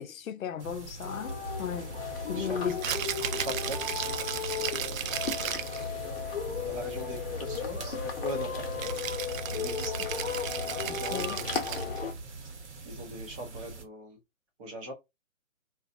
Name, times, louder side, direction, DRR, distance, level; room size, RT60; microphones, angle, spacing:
voice 1, 0.0-2.0 2.3-2.8 10.8-11.4, left 8 dB, 85° left, 0.6 m, -35 dB
sound 1, 0.6-13.8, right 3 dB, 55° right, 1.0 m, -43 dB
sound 2, 1.0-12.1, left 5 dB, 45° left, 0.9 m, -35 dB
voice 2, 2.1-2.6 2.8-4.2 4.6-5.1 5.5-5.6 6.0-6.2 6.6-9.0 9.5-12.5 12.8-14.2 14.6-14.9, right 1 dB, 25° right, 0.9 m, -42 dB
Rattle (instrument), 2.7-5.9 8.8-12.0, right 9 dB, 75° right, 0.5 m, -35 dB
2.4 x 2.3 x 2.5 m
hypercardioid pair, 150°, 40 cm